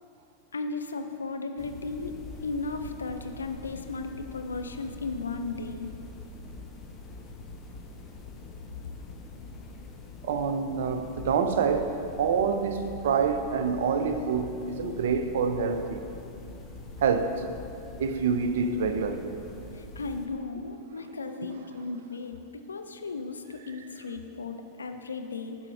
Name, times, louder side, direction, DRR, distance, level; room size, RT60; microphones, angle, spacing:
voice 1, 0.5-5.9 19.7-22.4 22.7-25.6, left 3 dB, 75° left, 0.5 m, -35 dB
sound 1, 1.6-20.3, left 3 dB, 25° left, 0.9 m, -44 dB
voice 2, 10.2-16.0 17.0-17.5 18.0-19.4, right 5 dB, 60° right, 0.5 m, -27 dB
11.0 x 4.5 x 5.4 m
figure-of-eight pair, 90°, 0 cm